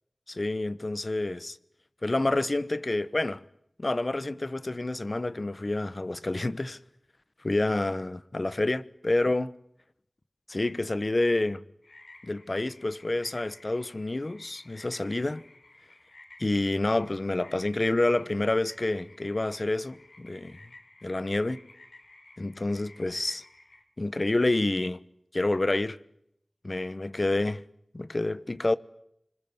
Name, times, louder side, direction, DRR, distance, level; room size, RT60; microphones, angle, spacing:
voice 1, 0.3-1.6 2.0-3.4 3.8-6.8 7.4-9.5 10.5-11.6 12.2-15.4 16.4-20.6 21.0-21.6 22.4-23.4 24.0-25.0 25.3-26.0 26.6-27.6 27.9-28.8, left 2 dB, 45° left, 1.0 m, -28 dB
sound 1, 11.8-23.8, left 2 dB, 85° left, 3.6 m, -54 dB
25.5 x 21.5 x 9.6 m
wide cardioid pair, 55°, 0 cm